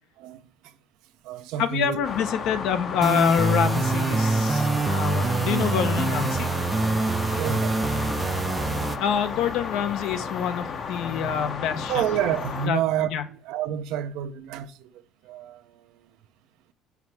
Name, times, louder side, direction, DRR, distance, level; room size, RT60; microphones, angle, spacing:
voice 1, 0.2-0.7 1.2-2.0 7.4-7.8 11.9-14.9 15.2-16.0, right 10 dB, 75° right, 0.6 m, -29 dB
voice 2, 1.6-6.5 9.0-12.0 12.7-12.8 13.1-13.2, left 8 dB, 70° left, 0.8 m, -26 dB
sound 1, 2.0-12.7, left 5 dB, 40° left, 0.8 m, -33 dB
sound 2, 3.0-9.0, right 3 dB, 20° right, 0.4 m, -25 dB
4.8 x 4.7 x 5.5 m
cardioid pair, 110°, 0 cm